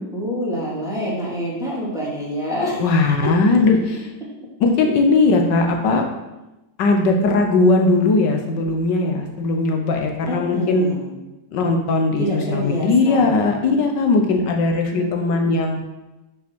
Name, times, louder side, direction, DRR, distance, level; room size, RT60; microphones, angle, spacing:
voice 1, 0.1-3.3 10.3-11.1 12.2-13.4 14.9-15.5, equal, ahead, -7 dB, 2.6 m, -27 dB
voice 2, 2.8-3.8 4.6-6.1 6.8-10.9 11.5-15.8, left 3 dB, 80° left, 3 dB, 1.5 m, -18 dB
6.1 x 6.0 x 6.0 m, 1.0 s
omnidirectional pair, 1.9 m